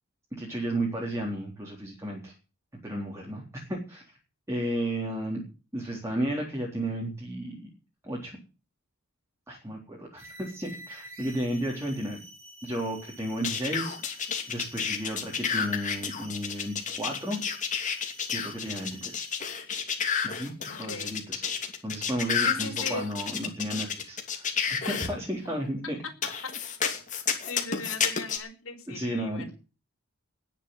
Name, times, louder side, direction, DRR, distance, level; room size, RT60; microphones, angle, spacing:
voice 1, 0.4-2.3 2.8-4.0 4.5-5.4 5.7-7.7 8.0-8.4 9.5-12.2 12.6-14.2 14.5-17.4 18.3-19.2 20.2-20.5 20.8-21.4 21.8-24.5 24.9-26.0 27.7-27.8 28.9-29.5, right 1 dB, 15° right, -3 dB, 3.9 m, -33 dB
sound 1, 10.2-19.7, right 1 dB, 60° right, 4.7 m, -49 dB
sound 2, 13.4-25.1 26.2-28.4, left 7 dB, 35° left, 2.8 m, -30 dB
voice 2, 20.7-21.2 22.4-23.0 24.8-25.0 26.8-26.9 27.5-29.5, left 4 dB, 60° left, 2 dB, 4.8 m, -38 dB
19.5 x 7.6 x 7.9 m, 0.34 s
head